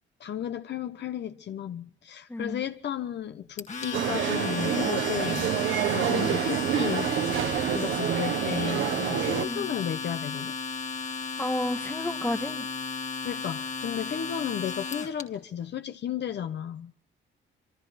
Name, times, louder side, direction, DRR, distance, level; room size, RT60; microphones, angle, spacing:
voice 1, 0.2-7.1 7.7-10.5 13.2-16.9, left 9 dB, 60° left, 1.0 m, -34 dB
voice 2, 2.3-2.6 6.0-6.4 9.4-9.7 11.0-12.7, left 1 dB, 10° left, 1.7 m, -32 dB
Domestic sounds home sounds, 3.6-15.2, left 5 dB, 35° left, 2.0 m, -34 dB
sound 1, 3.9-9.5, right 11 dB, 80° right, 1.4 m, -27 dB
26.0 x 24.0 x 4.2 m
cardioid pair, 90°, 20 cm